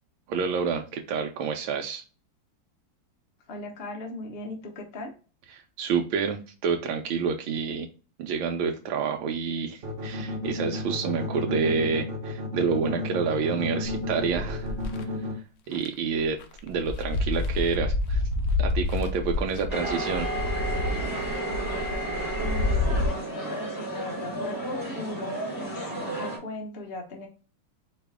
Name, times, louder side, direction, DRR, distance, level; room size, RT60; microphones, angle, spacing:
voice 1, 0.3-2.0 5.5-7.9 8.2-14.7 15.2-18.2 18.6-20.3, right 5 dB, 85° right, 3 dB, 1.4 m, -28 dB
voice 2, 3.5-5.2 22.4-27.3, left 2 dB, 45° left, 2 dB, 0.9 m, -38 dB
sound 1, 9.8-15.3, left 2 dB, 45° right, 0.8 m, -32 dB
sound 2, 13.8-15.0 15.7-15.9 16.2-23.1, left 2 dB, 70° left, 0.7 m, -29 dB
sound 3, 19.7-26.4, right 2 dB, 10° left, 2.3 m, -32 dB
4.7 x 2.9 x 3.5 m, 0.34 s
omnidirectional pair, 2.1 m